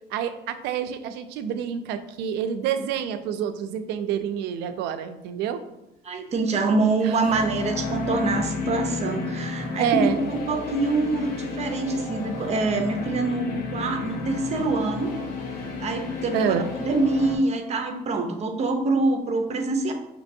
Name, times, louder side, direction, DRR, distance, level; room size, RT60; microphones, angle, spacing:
voice 1, 0.1-5.6 7.0-7.1 9.8-10.3 16.3-16.7, right 8 dB, 85° right, 10 dB, 0.4 m, -27 dB
voice 2, 6.0-15.2 15.8-16.6 16.9-19.9, right 3 dB, 40° right, 5 dB, 0.6 m, -25 dB
sound 1, 7.2-17.4, left 4 dB, 65° left, 0.8 m, -32 dB
5.1 x 2.9 x 2.6 m, 0.91 s
cardioid pair, 110°, 17 cm